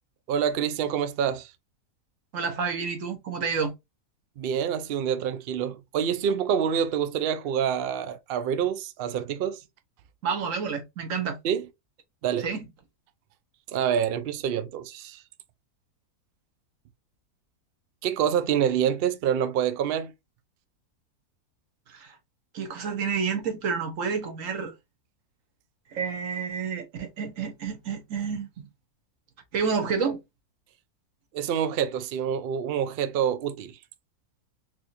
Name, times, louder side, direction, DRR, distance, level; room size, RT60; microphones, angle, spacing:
voice 1, 0.3-1.5 4.4-9.6 11.4-11.7 12.2-12.5 13.7-15.2 18.0-20.1 31.3-33.8, right 8 dB, 90° right, 0.5 m, -27 dB
voice 2, 2.3-3.7 10.2-11.4 12.4-12.7 21.9-22.2 22.5-24.7 25.9-28.5 29.5-30.2, right 6 dB, 60° right, 1.3 m, -29 dB
4.2 x 2.9 x 2.6 m
omnidirectional pair, 1.6 m